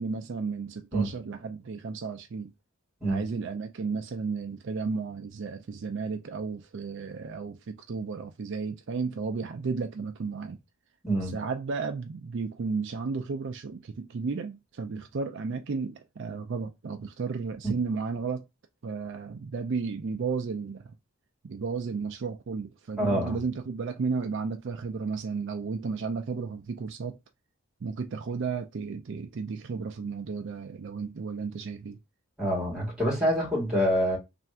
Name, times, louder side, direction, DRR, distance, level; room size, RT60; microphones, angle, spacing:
voice 1, 0.0-2.5 3.0-10.6 11.2-18.4 18.8-20.9 21.4-27.2 27.8-32.0, right 4 dB, 55° right, 0.4 m, -33 dB
voice 2, 11.0-11.4 23.0-23.4 32.4-34.2, equal, 5° right, 1.9 m, -26 dB
3.4 x 2.5 x 4.3 m
head